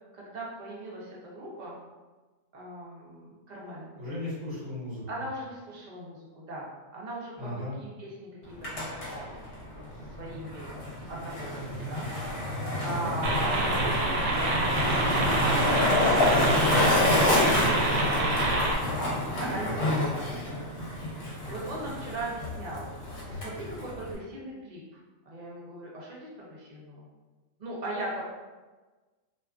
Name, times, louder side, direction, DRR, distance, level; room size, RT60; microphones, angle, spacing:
voice 1, 0.1-1.8 2.5-3.9 5.1-6.7 6.9-8.2 8.4-9.4 9.7-10.7 11.1-12.1 12.4-18.9 19.4-20.3 21.2-25.0 25.3-27.1 27.6-28.2, right 1 dB, 55° right, -4 dB, 0.5 m, -39 dB
voice 2, 3.9-5.0 7.4-7.8 18.8-19.0 20.2-20.5, left 1 dB, 35° right, -11 dB, 1.3 m, -37 dB
Skateboard, 8.4-24.1, left 1 dB, 65° left, 1.0 m, -28 dB
sound 1, 13.2-18.8, right 2 dB, 75° right, 0.9 m, -27 dB
2.4 x 2.3 x 2.3 m, 1.3 s
omnidirectional pair, 1.3 m